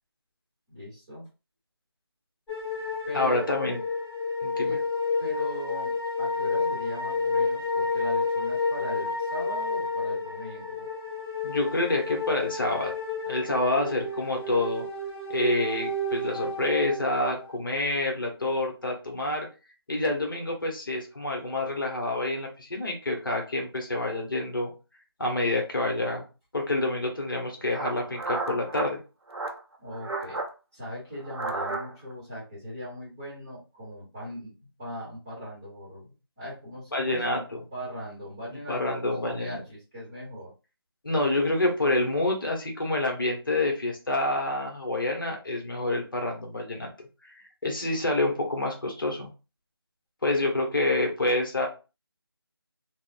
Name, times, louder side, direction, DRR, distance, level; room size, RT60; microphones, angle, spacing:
voice 1, 0.7-1.2 3.1-3.5 4.6-4.8 5.2-10.9 29.8-30.4 30.7-34.5 34.8-37.4 37.7-40.5, equal, 10° right, -9 dB, 0.9 m, -39 dB
sound 1, 2.5-17.6, left 3 dB, 10° left, 1.4 m, -30 dB
voice 2, 3.1-3.8 4.4-4.8 11.4-13.0 13.3-14.9 15.3-19.5 19.9-24.7 25.2-26.3 26.5-29.0 36.9-37.6 38.7-39.6 41.0-46.9 47.2-47.3 47.6-49.3 50.2-51.7, left 2 dB, 55° left, 1 dB, 0.9 m, -27 dB
sound 2, 27.2-27.3 27.7-28.9 29.3-29.6 29.9-30.5 31.2-32.1, right 3 dB, 85° right, 0.7 m, -33 dB
2.9 x 2.0 x 2.5 m, 0.31 s
figure-of-eight pair, 170°, 13 cm